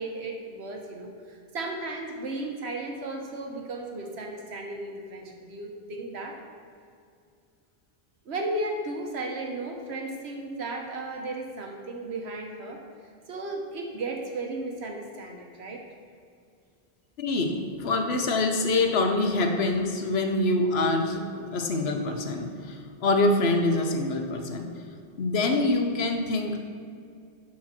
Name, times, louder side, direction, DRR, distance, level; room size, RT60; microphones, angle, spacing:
voice 1, 0.0-6.4 8.2-12.8 13.3-15.9, right 2 dB, 85° right, 2 dB, 1.4 m, -35 dB
voice 2, 17.2-24.8 25.2-26.6, left 2 dB, 75° left, 5 dB, 1.1 m, -25 dB
12.0 x 4.6 x 4.4 m, 2.3 s
omnidirectional pair, 1.1 m